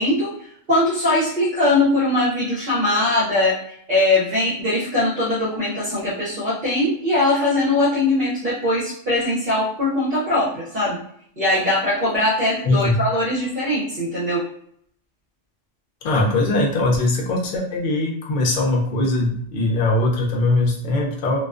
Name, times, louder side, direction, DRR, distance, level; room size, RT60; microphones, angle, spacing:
voice 1, 0.0-3.6 3.9-11.0 11.4-14.4, left 2 dB, 50° right, -6 dB, 0.8 m, -21 dB
voice 2, 12.6-13.0 16.0-21.4, left 2 dB, 50° left, 0 dB, 0.6 m, -21 dB
2.3 x 2.2 x 2.4 m, 0.65 s
omnidirectional pair, 1.2 m